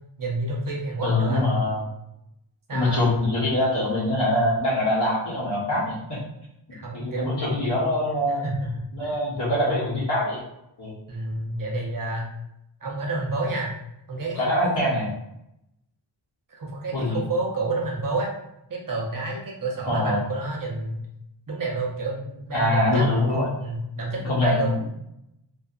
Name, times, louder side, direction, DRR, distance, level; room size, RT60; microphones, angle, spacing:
voice 1, 0.2-1.4 2.7-3.0 6.7-7.6 8.4-9.2 11.1-12.3 12.8-13.7 14.1-14.7 16.5-18.3 18.7-21.0 21.5-23.0 23.3-24.7, right 2 dB, 40° right, -2 dB, 0.7 m, -29 dB
voice 2, 1.0-1.8 2.7-6.2 6.7-8.4 8.9-10.4 10.8-11.0 14.3-15.1 16.9-17.2 19.8-20.2 22.5-23.5 24.3-24.9, left 1 dB, 55° left, -9 dB, 0.8 m, -24 dB
2.6 x 2.4 x 2.3 m, 0.82 s
wide cardioid pair, 70°, 49 cm